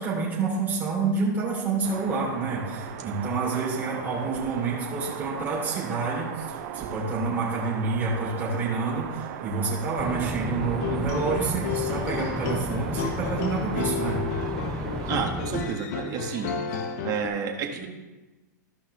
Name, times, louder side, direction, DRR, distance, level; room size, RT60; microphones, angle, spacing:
voice 1, 0.0-14.2, right 4 dB, 20° right, -6 dB, 3.3 m, -28 dB
sound 1, 1.8-15.2, right 9 dB, 55° right, 0.8 m, -37 dB
sound 2, 10.0-15.7, equal, 5° left, 0.6 m, -33 dB
sound 3, 10.6-17.3, left 7 dB, 60° left, 1.0 m, -32 dB
voice 2, 15.1-16.5 17.0-17.9, right 6 dB, 35° right, 1 dB, 1.6 m, -30 dB
14.0 x 5.5 x 3.3 m, 1.1 s
hypercardioid pair, 115°, 10 cm